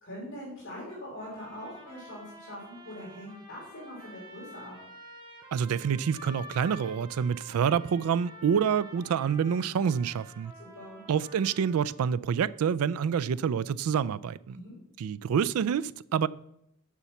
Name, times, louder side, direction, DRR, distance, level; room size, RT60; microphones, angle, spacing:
voice 1, 0.0-4.8 10.6-11.0 14.5-14.8, equal, 55° left, 3.5 m, -42 dB
sound 1, 1.2-12.2, equal, 20° right, 1.7 m, -49 dB
voice 2, 5.5-10.5 11.1-14.6 15.0-16.3, right 7 dB, 75° right, 0.3 m, -27 dB
7.1 x 5.8 x 7.0 m
head